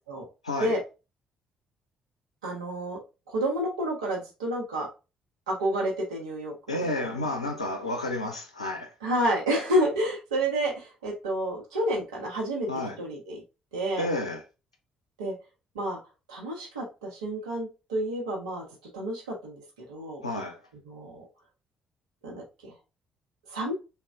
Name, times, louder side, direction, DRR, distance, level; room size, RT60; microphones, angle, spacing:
voice 1, 0.4-0.7 6.7-8.9 12.7-13.0 14.0-14.4 20.2-20.6, left 2 dB, 85° left, 0.5 m, -31 dB
voice 2, 2.4-3.0 3.3-4.9 5.5-6.9 9.0-12.7 13.0-13.4 13.7-14.1 15.2-15.3 15.7-16.0 16.3-18.6 18.9-19.6 19.9-20.2 20.9-21.3 22.2-22.7 23.5-23.7, right 1 dB, 75° right, 0.9 m, -29 dB
3.6 x 2.3 x 3.3 m
figure-of-eight pair, 45°, 3 cm